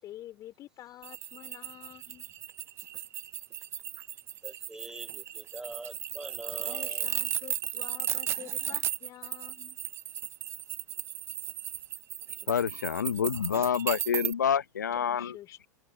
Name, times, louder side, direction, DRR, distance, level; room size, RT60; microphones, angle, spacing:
voice 1, 0.0-2.3 6.6-9.8 14.9-15.7, left 13 dB, 35° left, 3.2 m, -48 dB
sound 1, 1.0-14.3, right 11 dB, 25° right, 0.4 m, -36 dB
voice 2, 4.4-7.1, right 2 dB, 5° right, 4.2 m, -44 dB
voice 3, 12.5-15.4, left 8 dB, 75° left, 0.9 m, -28 dB
figure-of-eight pair, 90°, 10 cm